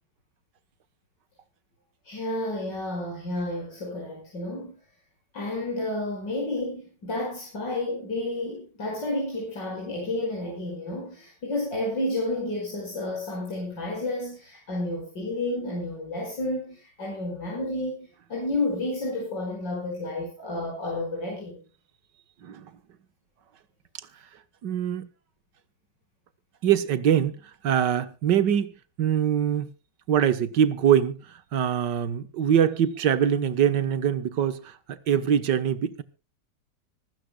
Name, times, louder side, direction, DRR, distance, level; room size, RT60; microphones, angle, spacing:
voice 1, 2.0-4.7 5.3-21.6, left 2 dB, 85° left, 6.4 m, -31 dB
voice 2, 24.6-25.1 26.6-28.7 29.0-29.7 30.1-36.0, right 9 dB, 80° right, 1.9 m, -23 dB
24.5 x 13.0 x 2.3 m
omnidirectional pair, 1.9 m